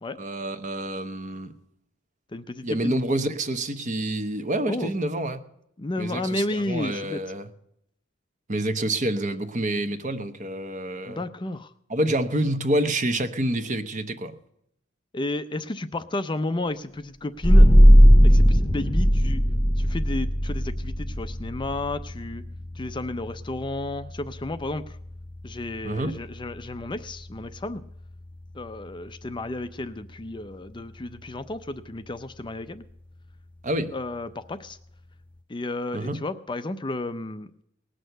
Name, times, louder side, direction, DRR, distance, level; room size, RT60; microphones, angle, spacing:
voice 1, 0.2-1.5 2.6-5.4 6.0-7.5 8.5-11.2 11.9-14.3 25.8-26.1 33.6-33.9 35.9-36.2, right 1 dB, 40° right, 9 dB, 1.0 m, -27 dB
voice 2, 2.3-3.0 4.7-4.9 5.8-7.2 11.1-11.7 15.1-17.7 18.2-19.4 19.8-22.4 22.8-25.0 25.4-27.8 28.5-32.8 33.9-34.8 35.5-37.6, left 2 dB, 25° left, 11 dB, 0.5 m, -32 dB
sound 1, 17.4-28.7, equal, 5° left, 1.0 m, -20 dB
19.0 x 6.4 x 7.8 m, 0.77 s
head